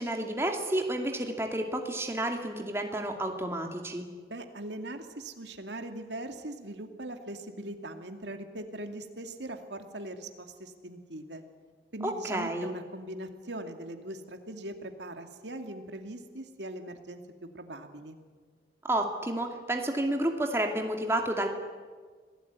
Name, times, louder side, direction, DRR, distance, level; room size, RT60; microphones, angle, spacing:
voice 1, 0.0-4.0 12.0-12.7 18.8-21.5, right 1 dB, 15° right, 3 dB, 2.5 m, -30 dB
voice 2, 4.3-11.4 11.9-17.2 17.5-18.2, right 1 dB, 90° right, 6 dB, 2.4 m, -41 dB
26.5 x 18.0 x 9.5 m, 1.5 s
head